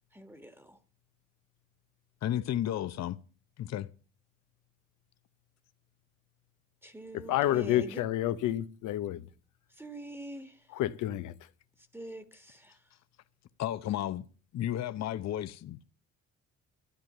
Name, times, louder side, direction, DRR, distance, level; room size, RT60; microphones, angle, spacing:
voice 1, 0.1-0.8 6.8-8.0 9.7-10.7 11.8-12.8, right 1 dB, 5° right, 1.5 m, -45 dB
voice 2, 2.2-3.1 3.6-3.9 13.6-14.2 14.5-15.9, left 11 dB, 60° left, 0.7 m, -33 dB
voice 3, 7.1-9.3 10.7-11.3, left 13 dB, 90° left, 0.9 m, -29 dB
12.5 x 9.2 x 6.7 m
cardioid pair, 90°, 30 cm